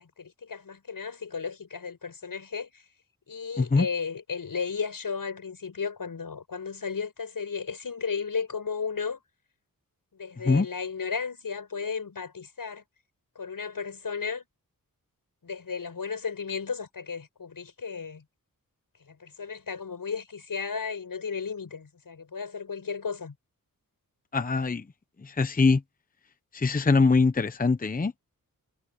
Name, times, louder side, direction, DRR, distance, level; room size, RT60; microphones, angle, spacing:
voice 1, 0.0-2.8 3.3-9.2 10.1-12.8 13.4-14.4 15.4-18.2 19.1-23.3, left 5 dB, 70° left, 7.2 m, -34 dB
voice 2, 24.3-24.8 25.3-25.8 26.5-28.1, left 4 dB, 25° left, 0.7 m, -22 dB
wide cardioid pair, 130°, 35 cm